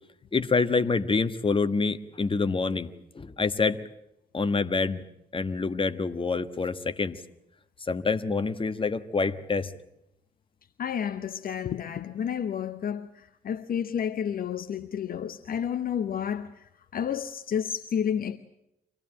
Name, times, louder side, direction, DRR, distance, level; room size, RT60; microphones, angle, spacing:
voice 1, 0.3-3.8 4.3-5.0 5.3-7.2 7.9-9.7, left 4 dB, 25° left, 1.4 m, -26 dB
voice 2, 10.8-18.4, left 8 dB, 45° left, 0.9 m, -31 dB
25.0 x 17.5 x 8.9 m
hypercardioid pair, 45°, 20 cm